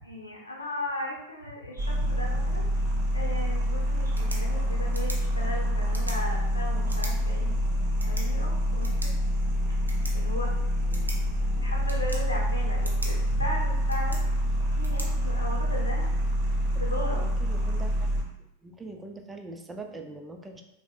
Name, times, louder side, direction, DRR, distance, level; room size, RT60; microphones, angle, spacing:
voice 1, 0.0-7.5 8.0-8.9 10.1-10.5 11.6-14.2 14.8-16.1 16.8-17.3, left 1 dB, 80° left, -3 dB, 0.7 m, -36 dB
sound 1, 1.8-18.2, equal, 45° right, 0.6 m, -26 dB
sound 2, 3.9-15.9, right 1 dB, 85° right, 0.4 m, -45 dB
voice 2, 10.9-11.2 16.7-16.8 17.2-18.1 18.6-20.6, right 3 dB, 10° right, 3 dB, 0.3 m, -42 dB
3.2 x 2.0 x 2.3 m, 0.84 s
figure-of-eight pair, 90°, 0 cm